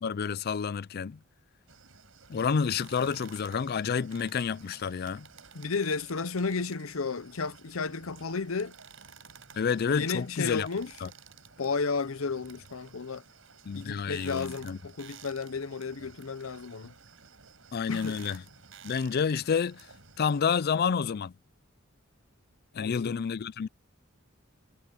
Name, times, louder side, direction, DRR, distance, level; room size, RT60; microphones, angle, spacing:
voice 1, 0.0-1.2 2.3-5.3 9.6-10.7 11.0-11.1 13.7-14.8 17.7-18.4 18.8-19.9 20.2-21.3 22.7-23.7, left 6 dB, 50° left, 0.4 m, -29 dB
sound 1, 1.7-20.8, right 6 dB, 70° right, 6.4 m, -53 dB
voice 2, 5.5-8.7 9.9-10.9 11.6-13.2 13.7-16.9 17.9-18.2 22.8-23.1, left 4 dB, 85° left, 0.8 m, -33 dB
head